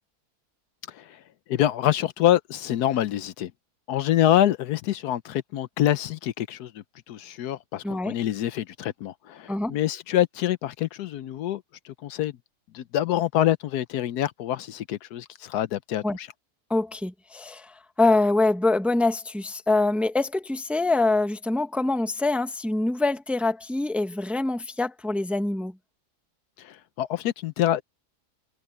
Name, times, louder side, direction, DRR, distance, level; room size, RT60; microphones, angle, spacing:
voice 1, 0.9-1.2 1.5-3.5 3.9-12.4 12.7-16.3 26.6-27.8, left 12 dB, 80° left, 1.2 m, -26 dB
voice 2, 16.7-17.7 18.0-25.7, left 2 dB, ahead, 1.0 m, -24 dB
omnidirectional pair, 1.7 m